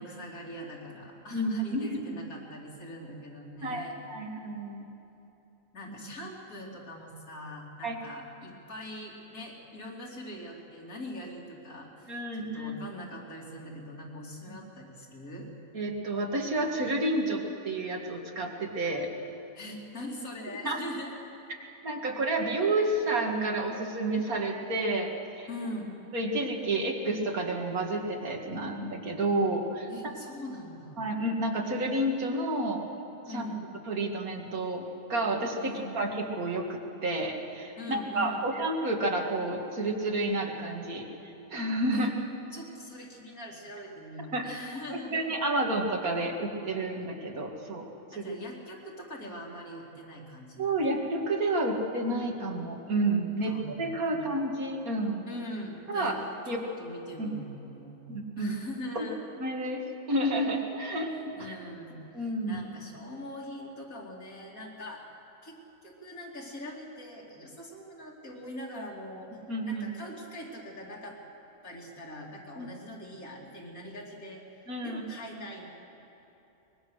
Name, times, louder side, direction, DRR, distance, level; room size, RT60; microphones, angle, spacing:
voice 1, 0.0-3.9 5.7-15.5 19.6-21.1 25.5-25.9 29.9-31.0 33.3-33.6 35.6-36.0 37.8-38.5 41.9-42.1 42.5-45.3 48.1-50.7 53.4-53.8 54.1-54.2 55.3-56.2 56.5-59.2 61.4-65.0 65.4-69.3 69.7-71.2 71.6-74.4 74.8-75.7, left 1 dB, 75° left, -3 dB, 3.5 m, -42 dB
voice 2, 1.3-1.9 3.6-4.9 7.8-8.0 12.1-12.8 14.5-14.6 15.7-19.1 20.6-20.8 21.8-25.1 25.4-25.5 26.1-29.9 31.0-32.8 33.3-33.5 33.9-34.8 35.1-42.1 44.3-44.5 44.9-48.4 50.6-55.3 55.9-56.2 56.5-56.6 57.2-57.3 58.1-58.5 59.0-59.1 59.4-59.8 60.1-61.6 62.1-62.6 69.5-69.9 72.6-72.7 74.7-75.0 75.3-75.4, right 2 dB, 80° right, 1 dB, 2.5 m, -30 dB
23.5 x 20.5 x 6.4 m, 3.0 s
omnidirectional pair, 1.5 m